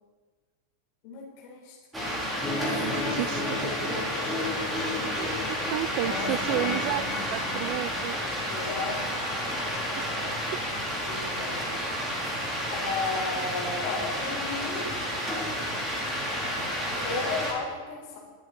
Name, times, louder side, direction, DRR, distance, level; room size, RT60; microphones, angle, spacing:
voice 1, 1.0-3.5 5.0-6.8 8.5-9.3 11.0-11.9 12.3-12.4 12.7-14.9 17.0-18.2, left 3 dB, 45° left, -2 dB, 4.6 m, -36 dB
sound 1, 1.9-17.5, equal, 10° right, 3.5 m, -31 dB
sound 2, 2.4-9.5, left 3 dB, 10° left, 3.7 m, -35 dB
voice 2, 2.8-3.7 5.2-8.2 10.0-10.1, right 16 dB, 45° right, 17 dB, 0.4 m, -32 dB
20.0 x 8.3 x 4.3 m, 1.4 s
figure-of-eight pair, 90°, 0 cm